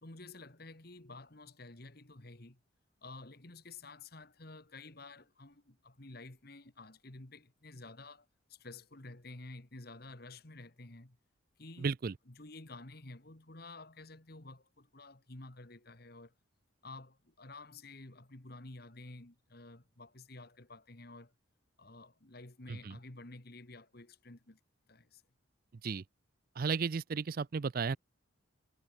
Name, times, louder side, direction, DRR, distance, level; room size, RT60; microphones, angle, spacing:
voice 1, 0.0-2.6 3.0-11.2 11.6-11.9 12.3-16.3 16.8-21.3 21.8-24.6 24.9-25.2, left 2 dB, 50° left, 1.9 m, -51 dB
voice 2, 11.8-12.1 22.7-23.0 25.8-26.0 26.6-28.0, right 5 dB, 45° right, 0.4 m, -34 dB
head